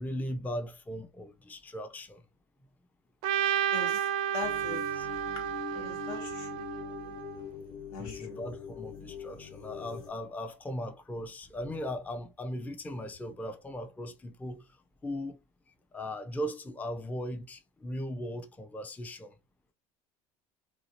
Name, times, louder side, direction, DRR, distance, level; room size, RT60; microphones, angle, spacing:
voice 1, 0.0-2.2 4.6-5.1 7.9-14.6 15.0-15.4 15.9-19.3, equal, 10° left, 0.4 m, -38 dB
Trumpet, 3.2-7.4, right 10 dB, 70° right, 0.4 m, -32 dB
voice 2, 3.7-4.8 5.7-6.6 7.9-8.4, left 4 dB, 80° left, 1.2 m, -41 dB
sound 1, 4.4-10.1, left 7 dB, 50° left, 1.0 m, -43 dB
2.6 x 2.4 x 2.8 m
hypercardioid pair, 85°, 18 cm